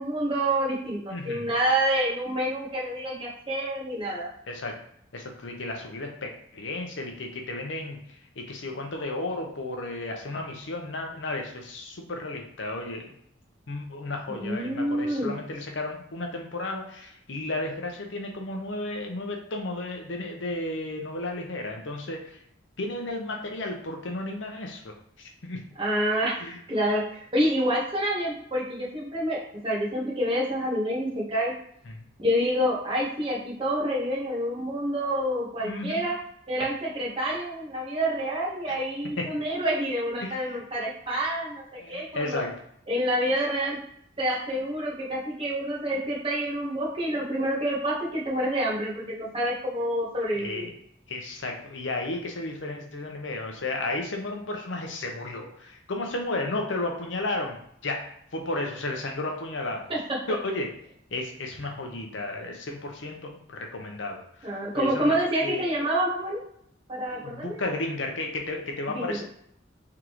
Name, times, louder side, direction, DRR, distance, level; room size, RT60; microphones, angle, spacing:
voice 1, 0.0-4.3 14.3-15.3 25.8-31.5 32.2-36.2 36.5-42.4 42.9-43.8 44.2-50.6 59.9-60.2 64.4-66.4 66.9-67.6 68.9-69.2, right 1 dB, 30° right, -5 dB, 1.3 m, -28 dB
voice 2, 1.1-1.5 4.5-4.8 5.1-8.0 8.4-13.1 13.7-22.4 22.8-25.6 26.4-26.6 31.9-32.1 35.6-36.1 38.7-38.8 39.2-39.3 40.2-40.6 41.8-42.5 50.3-50.7 51.1-57.6 57.8-58.1 58.3-59.9 60.3-60.7 61.1-64.2 64.7-65.7 67.1-69.2, left 2 dB, 70° left, 2 dB, 0.8 m, -33 dB
3.7 x 3.6 x 3.1 m, 0.69 s
head